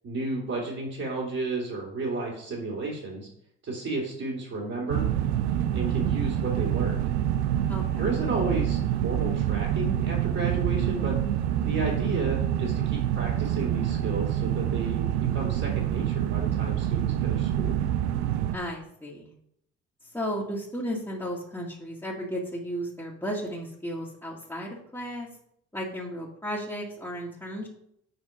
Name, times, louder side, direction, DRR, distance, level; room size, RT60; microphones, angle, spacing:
voice 1, 0.0-3.3 3.6-5.1 5.7-7.0 8.0-11.2 11.6-15.1 15.3-17.7, right 2 dB, 50° right, -6 dB, 3.0 m, -32 dB
sound 1, 4.9-18.6, right 11 dB, 80° right, 0.6 m, -26 dB
voice 2, 7.7-8.0 18.5-19.3 20.0-25.3 25.7-27.7, equal, 10° left, -6 dB, 2.0 m, -34 dB
8.0 x 4.3 x 5.2 m, 0.73 s
hypercardioid pair, 60°, 33 cm